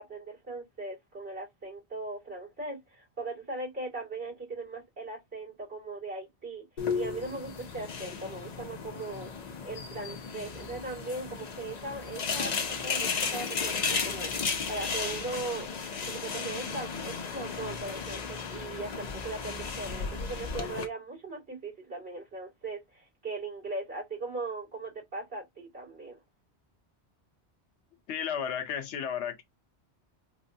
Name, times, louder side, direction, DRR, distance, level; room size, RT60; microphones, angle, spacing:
voice 1, 0.0-6.6 6.9-9.3 9.6-15.7 16.0-26.2, right 2 dB, 70° right, 2.4 m, -39 dB
sound 1, 6.8-20.9, left 5 dB, 45° left, 0.6 m, -34 dB
voice 2, 28.1-29.4, left 8 dB, 85° left, 0.9 m, -33 dB
3.9 x 2.2 x 2.6 m
omnidirectional pair, 1.1 m